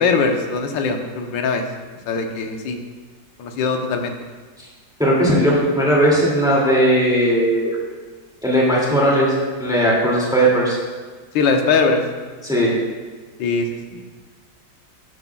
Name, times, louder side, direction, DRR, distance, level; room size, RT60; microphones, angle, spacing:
voice 1, 0.0-1.6 2.1-2.8 3.4-4.1 11.3-12.0 13.4-13.8, left 4 dB, 80° left, 4 dB, 1.6 m, -20 dB
voice 2, 5.0-7.8 8.4-9.3 9.6-10.8 12.4-12.7, equal, ahead, -5 dB, 2.3 m, -17 dB
12.0 x 9.5 x 2.3 m, 1.4 s
omnidirectional pair, 2.0 m